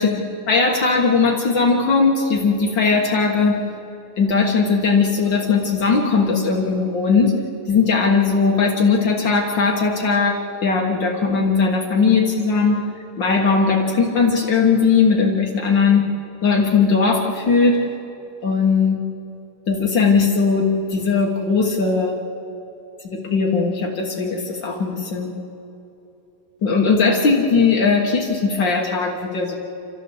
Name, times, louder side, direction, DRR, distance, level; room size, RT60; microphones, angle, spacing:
voice 1, 0.0-3.6 4.2-7.4 7.7-12.8 13.2-16.0 16.4-17.8 18.4-19.0 19.7-22.1 23.1-25.3 26.6-29.5, left 4 dB, 90° left, 0 dB, 1.0 m, -18 dB
29.5 x 13.0 x 8.0 m, 2.9 s
omnidirectional pair, 4.7 m